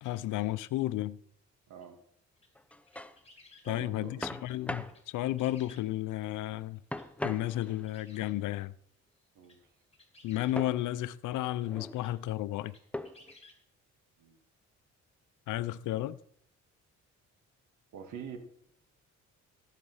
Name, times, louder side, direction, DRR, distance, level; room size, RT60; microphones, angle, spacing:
voice 1, 0.0-1.2 3.6-6.8 7.2-8.7 10.2-12.7 15.5-16.2, left 14 dB, 80° left, 0.6 m, -33 dB
voice 2, 1.7-2.0 3.6-4.2 9.4-9.6 14.2-14.4 17.9-18.4, right 7 dB, 80° right, 2.1 m, -45 dB
sound 1, 1.8-1.9 2.4-3.8 4.4-4.6 4.9-6.2 6.9-7.1 7.5-8.4 9.2-9.6 9.9-10.6 11.7-11.8 12.0-12.2 12.7-13.6, left 2 dB, 20° left, 3.1 m, -58 dB
sound 2, 2.6-3.2 4.2-5.0 6.9-7.9 10.6-10.8 11.5-12.0 12.9-13.3, left 1 dB, 5° left, 0.8 m, -39 dB
15.5 x 7.5 x 5.6 m
cardioid pair, 90°, 30 cm